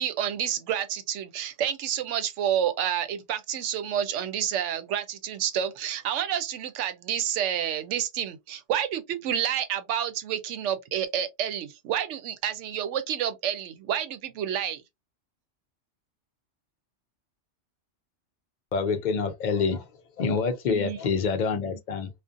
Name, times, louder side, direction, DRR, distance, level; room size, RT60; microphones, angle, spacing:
voice 1, 0.0-14.8 20.7-21.0, right 9 dB, 90° right, 0.9 m, -29 dB
voice 2, 18.7-19.8 20.2-22.1, left 5 dB, 55° left, 0.5 m, -26 dB
2.5 x 2.4 x 2.4 m
omnidirectional pair, 1.2 m